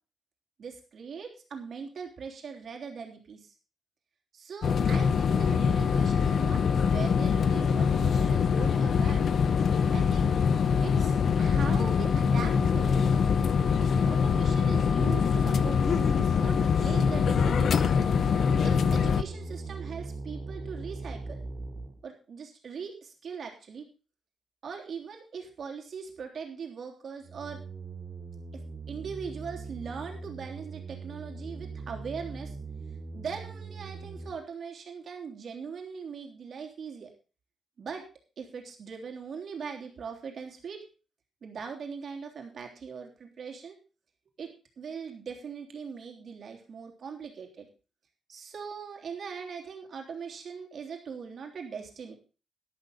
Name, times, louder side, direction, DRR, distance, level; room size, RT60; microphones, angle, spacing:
voice 1, 0.6-3.5 4.3-9.3 9.9-10.3 10.8-13.0 13.8-17.7 18.6-21.4 22.0-23.8 24.6-27.6 28.9-32.6 33.1-37.1 37.8-38.0 38.4-40.8 41.4-43.7 44.4-44.5 44.8-47.7 48.3-52.1, right 6 dB, 50° right, 2 dB, 3.3 m, -40 dB
sound 1, 4.6-19.2, left 6 dB, 55° left, 0.7 m, -24 dB
sound 2, 17.0-22.0 27.2-34.3, right 4 dB, 30° right, 3.9 m, -40 dB
12.0 x 11.5 x 4.0 m, 0.34 s
wide cardioid pair, 160°, 0 cm